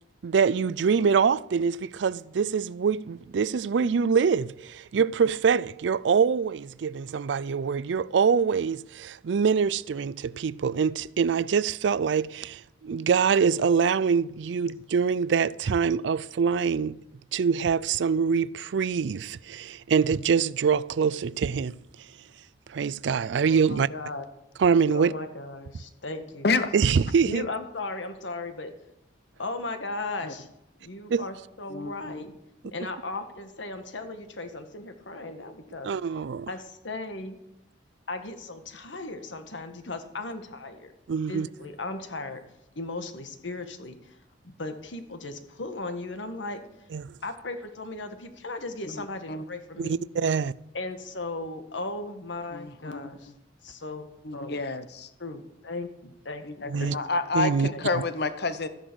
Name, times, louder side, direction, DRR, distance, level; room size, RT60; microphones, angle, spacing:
voice 1, 0.2-17.0 17.3-21.8 22.7-23.9 24.6-25.1 26.7-27.4 31.1-31.3 35.8-36.5 41.1-41.5 46.9-47.1 49.8-50.5 56.7-57.0 57.3-57.7, right 6 dB, 75° right, 0.4 m, -24 dB
voice 2, 23.4-24.2 24.9-26.5 27.2-28.7 29.4-30.5 30.8-32.3 32.7-35.9 36.5-37.4 38.1-40.9 41.3-42.4 42.7-44.2 44.4-46.6 47.2-50.0 50.7-53.3 53.6-54.6 55.2-57.0 57.7-57.8, left 2 dB, 90° left, 1.6 m, -37 dB
voice 3, 31.7-32.2 48.8-49.4 52.5-53.0 54.2-55.1 56.5-58.7, left 3 dB, 60° left, 1.0 m, -29 dB
13.5 x 10.0 x 6.2 m
head